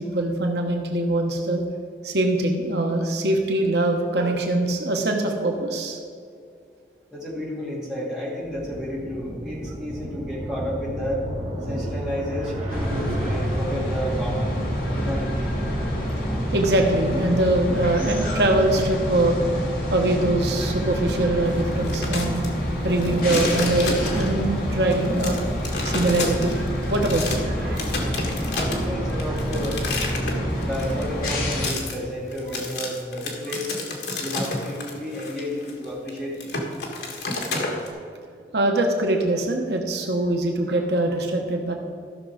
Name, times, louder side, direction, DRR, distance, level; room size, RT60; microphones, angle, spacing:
voice 1, 0.0-1.6 2.0-6.0 16.5-19.4 19.9-22.4 22.8-25.4 25.8-27.9 38.5-41.7, right 1 dB, 75° right, 2 dB, 1.1 m, -23 dB
voice 2, 7.1-11.2 11.7-14.6 15.0-15.5 28.5-29.8 30.2-33.8 34.2-36.5, equal, 5° right, -7 dB, 2.7 m, -31 dB
sound 1, 8.4-17.2, right 1 dB, 35° right, 2.0 m, -32 dB
sound 2, 12.7-31.7, equal, 50° left, 1.9 m, -27 dB
sound 3, 21.7-22.5 22.9-24.5 24.9-27.4 27.8-37.9, left 2 dB, 75° left, 1.7 m, -30 dB
14.5 x 6.2 x 5.0 m, 2.3 s
head